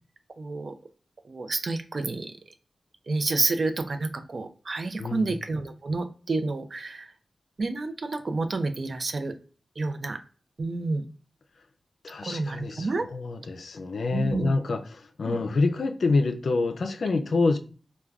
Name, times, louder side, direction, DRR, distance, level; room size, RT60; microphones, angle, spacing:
voice 1, 0.4-0.7 1.3-2.3 3.1-7.1 7.6-9.3 9.8-10.2 10.6-11.1 12.2-13.1 14.1-14.5 15.2-15.4, right 3 dB, 60° right, 0.4 m, -29 dB
voice 2, 5.0-5.4 12.0-17.6, left 3 dB, 80° left, 0.3 m, -27 dB
3.3 x 2.2 x 2.3 m
cardioid pair, 60°, 0 cm